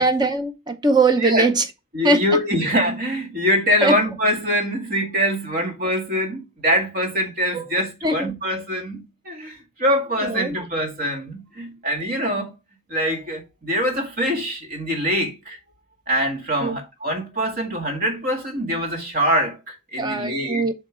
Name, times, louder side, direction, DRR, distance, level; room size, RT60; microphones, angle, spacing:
voice 1, 0.0-1.6 2.0-2.2 3.8-3.9 7.5-7.6 8.0-8.3 10.2-10.6 16.6-16.8 20.0-20.7, right 2 dB, 20° right, 0.7 m, -20 dB
voice 2, 1.2-1.5 1.9-12.5 12.9-15.6 16.1-20.7, equal, 45° right, 2.0 m, -24 dB
7.7 x 3.6 x 4.9 m
head